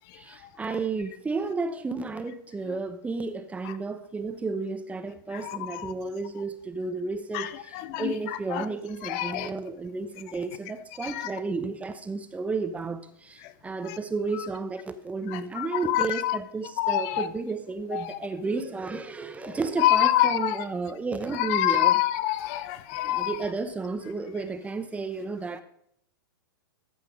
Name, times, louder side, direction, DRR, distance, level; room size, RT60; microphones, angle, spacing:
voice 1, 0.1-21.9 23.1-25.6, right 4 dB, 10° right, 0.8 m, -32 dB
voice 2, 5.3-5.9 7.3-8.7 9.0-9.5 11.0-11.3 13.4-13.5 13.9-14.0 14.3-14.5 15.3-16.4 16.8-17.3 17.9-18.2 19.5-20.6 21.3-23.4, left 13 dB, 45° left, 0.6 m, -27 dB
14.0 x 5.8 x 5.2 m
hypercardioid pair, 115°, 12 cm